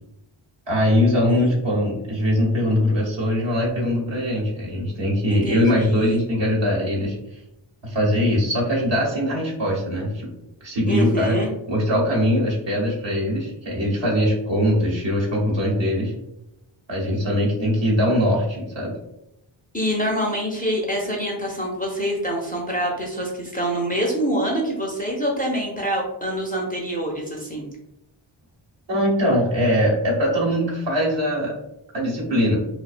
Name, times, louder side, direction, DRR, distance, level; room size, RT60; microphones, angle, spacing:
voice 1, 0.7-7.2 7.8-10.3 10.6-11.4 11.7-16.1 16.9-19.0 28.9-31.5 31.9-32.6, equal, 60° right, -4 dB, 1.0 m, -21 dB
voice 2, 5.3-6.2 10.9-11.5 19.7-27.7, equal, 20° left, -2 dB, 0.5 m, -26 dB
2.4 x 2.1 x 2.4 m, 0.84 s
cardioid pair, 55°, 50 cm